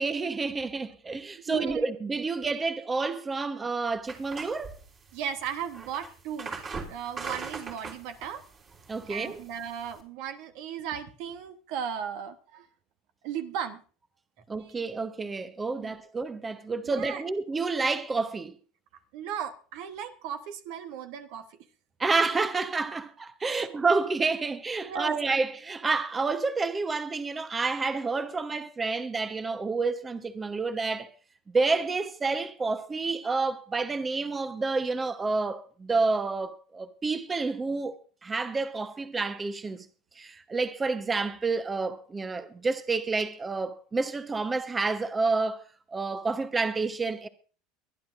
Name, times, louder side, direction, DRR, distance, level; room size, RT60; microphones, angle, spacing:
voice 1, 0.0-4.7 8.9-9.4 14.5-18.5 22.0-31.1 31.5-37.9 38.2-39.9 40.2-45.6 45.9-47.3, right 3 dB, 20° right, 1.0 m, -29 dB
voice 2, 1.5-1.8 5.1-6.5 6.9-8.4 9.1-12.7 13.2-13.8 14.6-14.7 15.8-16.0 16.8-17.2 19.1-21.6 23.5-23.7 24.8-25.2, right 8 dB, 65° right, 1.1 m, -36 dB
sound 1, 4.1-10.0, right 4 dB, 35° right, 3.3 m, -41 dB
23.0 x 10.5 x 2.6 m
hypercardioid pair, 85°, 0 cm